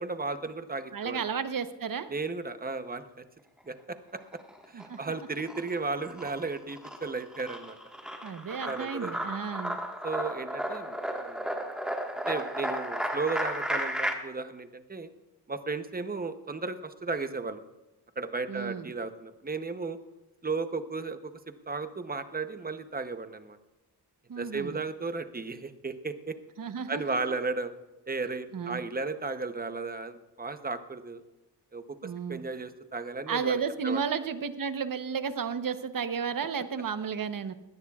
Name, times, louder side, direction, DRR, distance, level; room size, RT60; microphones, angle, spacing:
voice 1, 0.0-1.2 2.1-3.1 3.7-4.2 4.7-7.8 8.5-9.3 10.0-11.5 12.3-15.1 15.5-17.6 18.2-20.0 20.4-21.3 21.7-23.6 24.4-26.3 26.9-27.7 28.1-31.2 31.7-34.0, right 3 dB, 20° right, 9 dB, 0.8 m, -34 dB
voice 2, 0.9-2.1 4.7-5.0 8.2-9.8 18.5-18.9 24.3-24.8 26.6-27.2 28.5-28.8 32.0-32.4 33.3-37.5, right 6 dB, 55° right, 10 dB, 0.9 m, -33 dB
sound 1, 4.2-5.0 5.3-14.1, equal, ahead, 1.5 m, -34 dB
20.5 x 17.5 x 2.4 m, 1.1 s
wide cardioid pair, 150°, 41 cm